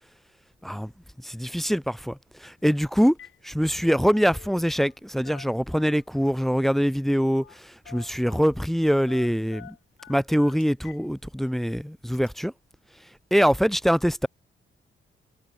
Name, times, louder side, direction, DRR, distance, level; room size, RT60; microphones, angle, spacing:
voice 1, 1.2-3.1 3.5-9.7 10.1-12.5 13.3-14.3, equal, ahead, 0.7 m, -24 dB
Telephone, 2.6-2.7 3.0-3.4 3.7-5.0 5.2-6.2 7.3-7.6 7.8-8.5 9.1-11.0 11.4-11.5 12.1-12.3, left 10 dB, 70° left, 3.5 m, -48 dB
wide cardioid pair, 145°, 21 cm